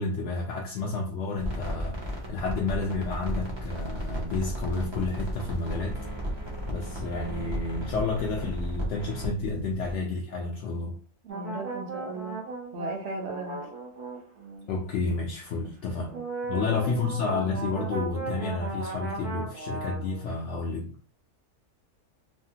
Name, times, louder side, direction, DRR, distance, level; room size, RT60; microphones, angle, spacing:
voice 1, 0.0-6.0 6.7-11.0 14.7-16.1 16.5-20.9, left 3 dB, 70° left, 0 dB, 0.7 m, -30 dB
sound 1, 1.3-9.9, equal, 35° right, 0.4 m, -34 dB
voice 2, 11.2-12.4 12.7-13.6 15.6-15.7 16.1-16.2 16.5-17.1, right 3 dB, 55° right, 2 dB, 0.8 m, -37 dB
sound 2, 11.3-14.7 16.1-20.3, right 3 dB, 85° right, 1.4 m, -36 dB
3.3 x 2.1 x 2.7 m, 0.43 s
omnidirectional pair, 1.6 m